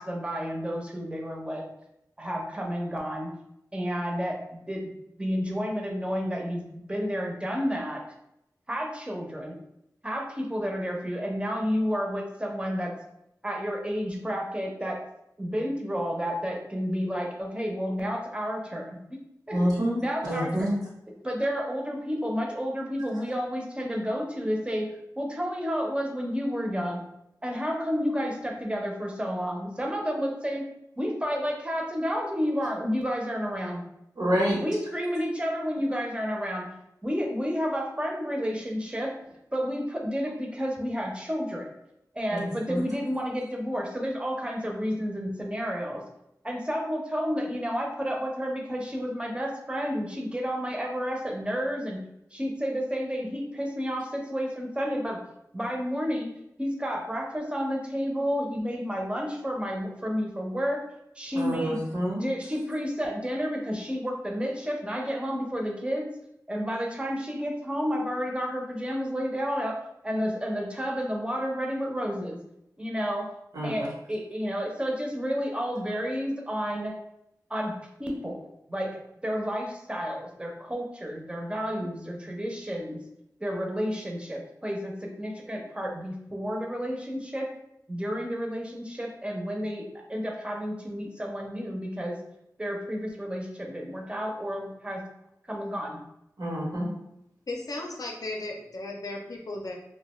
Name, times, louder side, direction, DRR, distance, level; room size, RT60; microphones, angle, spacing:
voice 1, 0.0-1.6 2.2-3.3 3.7-4.4 4.7-4.9 5.2-8.0 8.7-9.6 10.0-12.9 13.4-15.0 15.4-19.2 19.5-19.7 20.0-20.7 21.2-27.0 27.4-30.7 31.0-33.8 34.6-36.7 37.0-39.1 39.5-41.7 42.1-46.0 46.4-52.0 52.3-55.2 55.5-56.3 56.6-60.8 61.2-61.8 62.2-66.1 66.5-69.8 70.0-72.4 72.8-73.3 73.6-77.0 77.5-77.7 78.0-83.0 83.4-87.5 87.9-92.2 92.6-95.0 95.5-96.0, equal, 15° right, 0 dB, 0.5 m, -31 dB
voice 2, 19.5-20.0 20.3-20.7 34.2-34.6 42.3-42.4 42.7-42.8 61.3-62.2 73.5-73.7 96.4-96.9, equal, 80° right, -5 dB, 0.9 m, -27 dB
voice 3, 97.5-99.7, left 2 dB, 70° left, 1 dB, 0.5 m, -35 dB
2.3 x 2.1 x 3.0 m, 0.81 s
wide cardioid pair, 65°, 7 cm